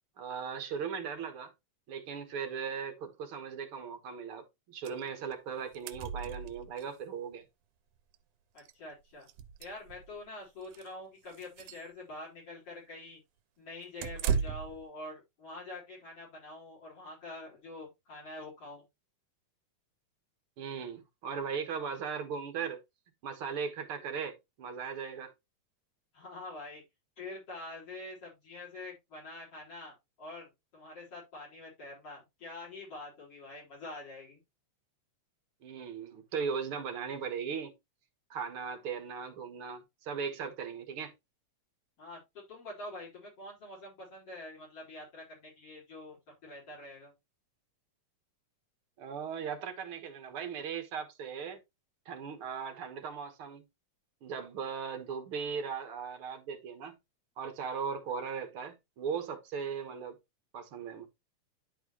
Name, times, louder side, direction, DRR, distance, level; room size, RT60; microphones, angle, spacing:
voice 1, 0.2-1.5 1.9-7.5 20.6-22.8 23.2-25.3 35.6-37.7 38.3-41.1 49.0-51.6 52.1-53.6 54.2-57.0 57.4-60.2 60.5-61.1, right 6 dB, 55° right, 2.0 m, -38 dB
sound 1, 4.9-5.0 5.3-5.4 5.6-6.9 8.1-8.2 8.6-8.7 9.2-10.2 10.6-10.9 11.3-11.9 14.0-14.8, right 7 dB, 90° right, 2.0 m, -36 dB
voice 2, 8.5-9.3 9.6-13.2 13.6-18.8 26.1-26.8 27.2-34.4 42.0-42.2 42.5-47.1, left 2 dB, 50° left, 5.2 m, -46 dB
11.0 x 4.6 x 3.0 m
omnidirectional pair, 3.3 m